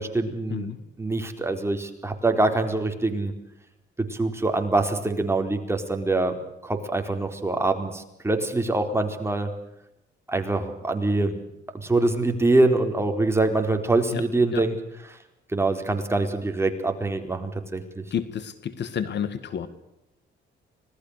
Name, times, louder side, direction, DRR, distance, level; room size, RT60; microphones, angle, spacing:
voice 1, 0.0-0.7 1.0-3.3 4.1-6.4 6.6-9.5 10.3-11.4 11.7-14.8 15.5-18.0, right 2 dB, 15° right, 5 dB, 4.2 m, -24 dB
voice 2, 18.1-19.7, left 8 dB, 60° left, 13 dB, 2.0 m, -30 dB
26.0 x 19.5 x 6.7 m, 0.86 s
cardioid pair, 90°, 20 cm